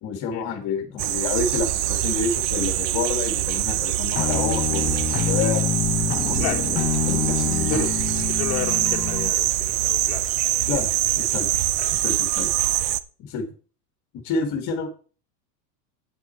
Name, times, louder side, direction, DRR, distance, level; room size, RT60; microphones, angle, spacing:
voice 1, 0.0-5.6 6.2-7.9 10.7-10.9 11.2-11.5 11.9-12.5 13.2-13.5 14.1-14.9, left 5 dB, 35° left, 5 dB, 1.7 m, -28 dB
sound 1, 1.0-13.0, right 14 dB, 40° right, 0.5 m, -24 dB
sound 2, 4.2-9.3, left 8 dB, 15° left, 1.1 m, -26 dB
voice 2, 8.3-10.3 11.8-11.9, left 14 dB, 55° left, -1 dB, 1.3 m, -32 dB
8.2 x 8.0 x 4.3 m, 0.39 s
supercardioid pair, 140°, 49 cm